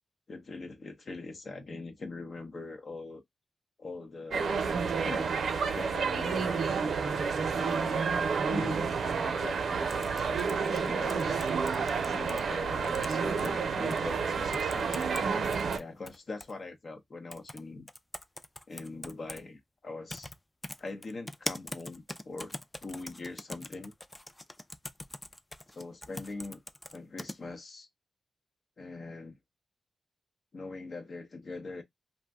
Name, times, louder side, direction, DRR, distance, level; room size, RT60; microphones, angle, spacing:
voice 1, 0.3-3.2 3.8-4.6 5.0-5.4 5.7-6.7 7.5-11.4 12.0-15.0 15.7-17.9 18.7-20.3 20.8-22.5 22.8-23.9 25.7-26.6 26.9-27.9 28.8-29.4 30.5-31.8, left 3 dB, 55° left, 0.7 m, -42 dB
sound 1, 4.3-15.8, right 5 dB, 80° right, 0.6 m, -30 dB
sound 2, 9.9-12.4 12.8-13.5 13.9-14.0 14.5-15.2 15.5-16.5 17.3-17.6 17.9-19.4 20.1-20.3 20.6-27.4, left 1 dB, 20° left, 0.4 m, -42 dB
2.6 x 2.1 x 3.4 m
cardioid pair, 70°, 0 cm